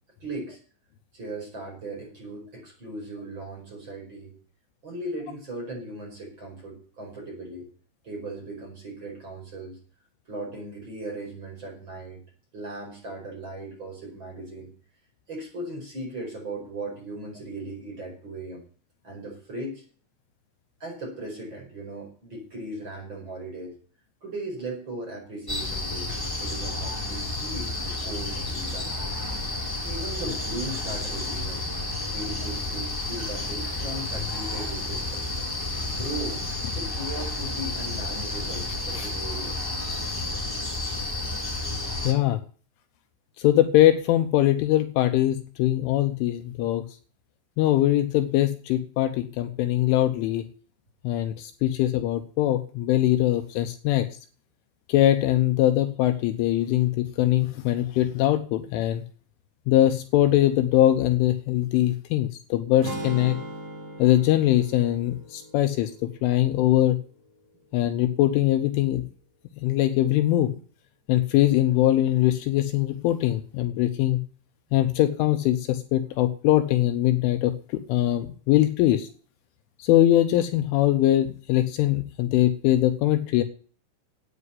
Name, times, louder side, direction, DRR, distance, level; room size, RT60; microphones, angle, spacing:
voice 1, 0.2-0.6 1.1-4.3 4.8-7.7 8.0-9.8 10.3-12.2 12.5-14.7 15.3-18.6 19.0-19.8 20.8-23.8 24.2-26.1 26.4-28.9 29.8-31.6 32.1-35.2 35.9-36.4 36.7-39.7, right 2 dB, 25° right, -1 dB, 5.3 m, -37 dB
sound 1, 25.5-42.1, left 2 dB, 10° left, 1.0 m, -31 dB
voice 2, 42.0-42.4 43.4-46.9 47.6-50.4 51.0-54.1 54.9-59.0 59.7-63.4 64.0-67.0 67.7-69.1 69.6-70.5 71.1-74.2 74.7-79.1 79.8-83.4, left 14 dB, 80° left, 8 dB, 3.2 m, -22 dB
sound 2, 62.8-67.0, right 2 dB, 50° right, 6.1 m, -39 dB
9.7 x 8.9 x 9.8 m, 0.42 s
omnidirectional pair, 5.9 m